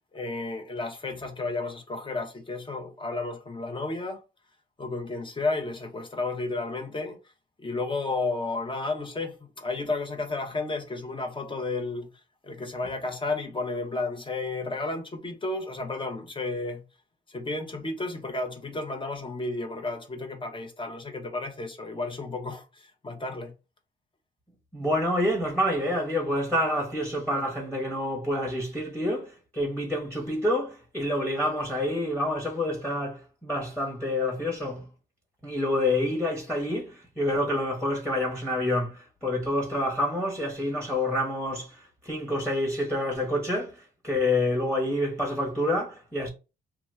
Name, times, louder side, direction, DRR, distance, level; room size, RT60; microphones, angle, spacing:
voice 1, 0.1-4.2 4.8-7.2 7.6-12.1 12.4-16.8 17.3-23.5, left 3 dB, 25° left, 0.9 m, -32 dB
voice 2, 24.7-34.9 35.4-46.3, left 1 dB, 5° left, 1.1 m, -28 dB
2.8 x 2.2 x 3.3 m
cardioid pair, 90°, 20 cm